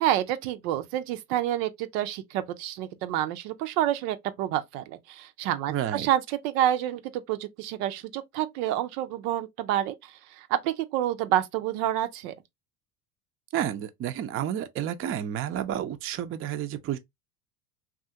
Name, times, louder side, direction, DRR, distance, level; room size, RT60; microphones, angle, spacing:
voice 1, 0.0-12.3, right 12 dB, 80° right, 0.6 m, -28 dB
voice 2, 5.7-6.1 13.5-17.0, right 10 dB, 30° right, 0.4 m, -30 dB
2.7 x 2.4 x 2.5 m
supercardioid pair, 80°, 45 cm